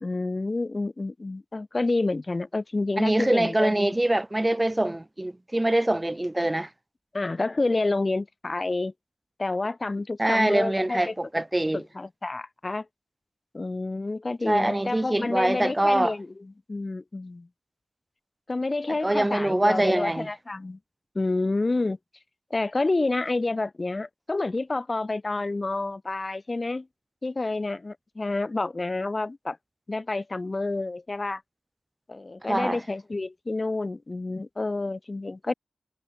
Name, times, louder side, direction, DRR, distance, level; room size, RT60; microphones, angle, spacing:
voice 1, 0.0-4.0 7.1-8.9 9.4-11.1 11.7-12.9 13.5-17.5 18.5-20.8 21.2-22.0 22.5-26.9 27.2-29.6 29.9-31.4 32.1-35.5, left 2 dB, 40° left, 1.9 m, -29 dB
voice 2, 3.0-6.7 10.2-11.8 14.5-16.1 19.0-20.3 32.5-32.8, right 1 dB, 20° right, 4.9 m, -24 dB
cardioid pair, 45°, 0 cm